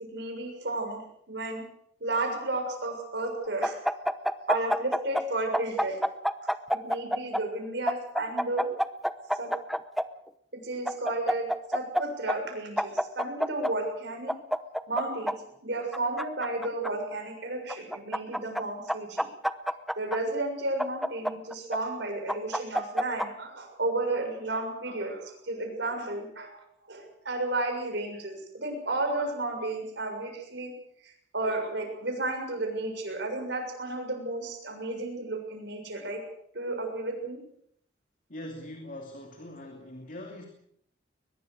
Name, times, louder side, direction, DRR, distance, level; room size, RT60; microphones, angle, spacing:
voice 1, 0.1-1.6 2.0-3.8 4.5-6.0 6.7-8.7 9.3-9.5 10.6-14.3 14.9-15.3 15.6-19.3 20.0-26.6 26.9-30.7 31.3-36.2 36.5-37.4, right 2 dB, 65° right, 4 dB, 6.8 m, -32 dB
sound 1, 3.6-5.2 5.5-7.4 7.9-10.0 10.9-12.0 12.3-12.4 12.8-13.7 14.3-15.3 15.9-16.9 17.7-18.6 18.9-20.2 20.8-21.8 22.3-23.3, equal, ahead, 0.8 m, -27 dB
voice 2, 38.3-40.5, left 1 dB, 45° left, 3 dB, 2.9 m, -42 dB
22.5 x 21.0 x 6.5 m, 0.71 s
head